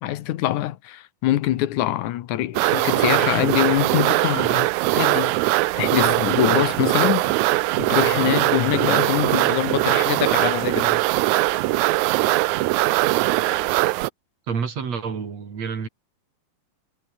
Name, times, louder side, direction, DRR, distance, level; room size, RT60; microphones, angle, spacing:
voice 1, 0.0-5.4 5.8-7.5 7.8-11.0, left 14 dB, 90° left, 2.5 m, -24 dB
sound 1, 2.5-14.1, right 19 dB, 80° right, 2.0 m, -21 dB
voice 2, 14.5-15.9, right 6 dB, 60° right, 4.4 m, -28 dB
omnidirectional pair, 3.4 m